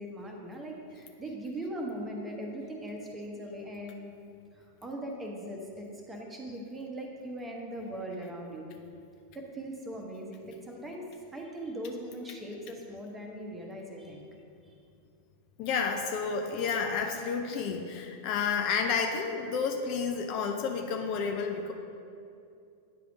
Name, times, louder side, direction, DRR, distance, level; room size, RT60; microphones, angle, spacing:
voice 1, 0.0-4.1 4.5-8.7 9.3-11.1 11.3-14.2 14.7-14.8, right 1 dB, 15° right, 0 dB, 1.0 m, -40 dB
voice 2, 15.6-21.7, left 5 dB, 40° left, 3 dB, 0.5 m, -30 dB
9.3 x 3.4 x 4.8 m, 2.6 s
figure-of-eight pair, 90°, 0 cm